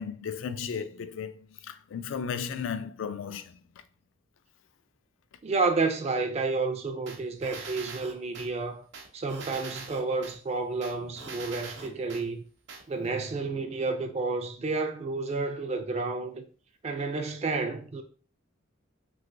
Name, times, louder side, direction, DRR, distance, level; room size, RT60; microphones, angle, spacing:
voice 1, 0.0-1.4 1.6-3.5, left 6 dB, 75° left, 0.3 m, -34 dB
voice 2, 5.4-8.8 9.1-12.4 12.9-16.4 16.8-18.0, right 3 dB, 35° right, 0.3 m, -30 dB
sound 1, 7.1-8.5 8.9-10.4 10.8-12.2 12.7-12.8, right 4 dB, 60° right, 0.7 m, -42 dB
3.2 x 2.8 x 2.5 m
head